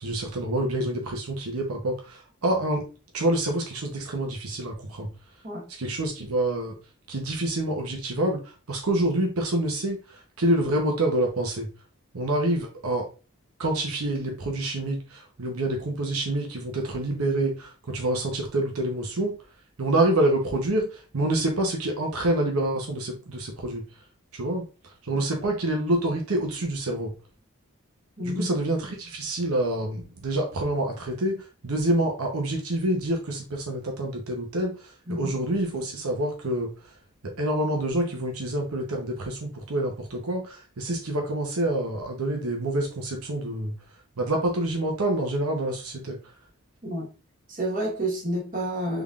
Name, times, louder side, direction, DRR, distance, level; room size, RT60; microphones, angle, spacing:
voice 1, 0.0-2.9 3.1-5.1 5.7-6.7 7.1-11.7 12.1-13.1 13.6-19.4 19.8-23.8 24.3-24.7 25.0-27.1 28.2-36.7 37.2-43.7 44.2-46.2, right 1 dB, 90° right, 0.8 m, -27 dB
voice 2, 28.2-28.5 35.1-35.4 46.8-47.1 47.5-49.0, right 1 dB, 40° right, 1.2 m, -29 dB
3.7 x 3.5 x 2.3 m
head